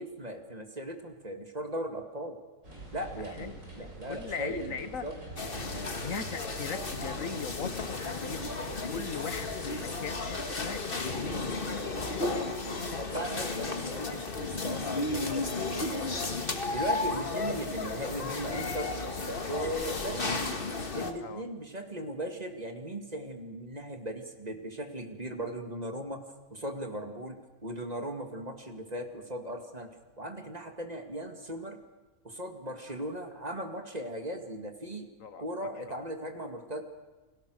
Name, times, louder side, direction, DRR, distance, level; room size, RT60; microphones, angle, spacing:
voice 1, 0.0-2.4 2.9-4.7 5.0-5.2 12.4-12.5 13.0-16.2 16.7-18.9 19.4-20.5 20.9-26.2 26.5-29.9 30.2-31.8 32.2-35.1 35.4-36.8, right 1 dB, 30° right, 5 dB, 2.3 m, -38 dB
sound 1, 2.6-9.9, right 2 dB, 65° right, 6.8 m, -46 dB
voice 2, 4.1-5.0 6.0-8.6 8.9-11.6 21.2-21.4 35.2-35.4 35.8-36.1, left 6 dB, 70° left, 12 dB, 1.5 m, -39 dB
sound 2, 5.4-21.1, left 3 dB, 40° left, 1.9 m, -34 dB
29.5 x 21.5 x 6.5 m, 1.2 s
omnidirectional pair, 1.5 m